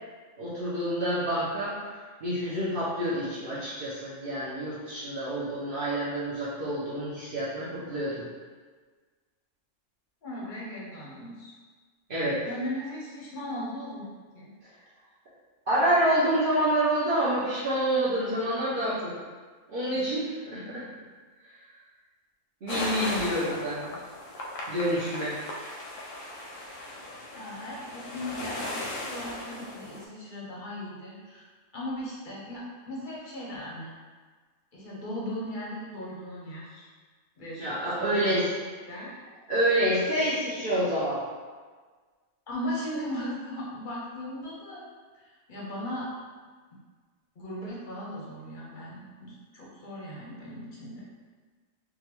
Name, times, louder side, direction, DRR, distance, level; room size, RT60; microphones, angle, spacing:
voice 1, 0.4-1.7 2.2-8.2 12.1-12.4 15.7-19.1 19.7-20.8 21.5-21.6 22.6-23.9 24.7-25.4 37.6-38.5 39.5-41.2, right 1 dB, 50° right, -10 dB, 0.8 m, -27 dB
voice 2, 10.2-11.5 12.4-14.1 14.3-14.5 27.3-31.4 31.7-33.9 34.7-36.9 37.4-37.7 37.9-38.5 38.9-39.1 42.5-46.1 47.4-51.0, left 1 dB, 50° left, -5 dB, 0.7 m, -37 dB
sound 1, 22.7-30.0, left 1 dB, 85° left, 1.0 m, -37 dB
3.6 x 2.2 x 2.9 m, 1.5 s
omnidirectional pair, 1.3 m